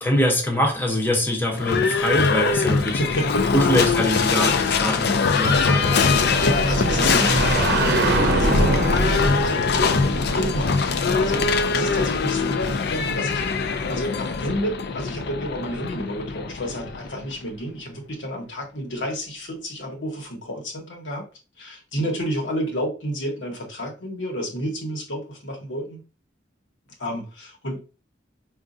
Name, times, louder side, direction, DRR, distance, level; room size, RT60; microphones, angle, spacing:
voice 1, 0.0-3.0 3.5-6.0, equal, 10° left, 0.7 m, -23 dB
Livestock farm animals working animals / Bell, 1.5-17.4, left 4 dB, 60° left, 0.4 m, -22 dB
voice 2, 3.0-3.8 6.4-13.4 13.9-21.3 21.6-26.0 27.0-27.8, equal, 85° left, 1.1 m, -30 dB
sound 1, 5.4-12.0, right 1 dB, 55° right, 0.7 m, -24 dB
4.9 x 2.4 x 2.5 m
head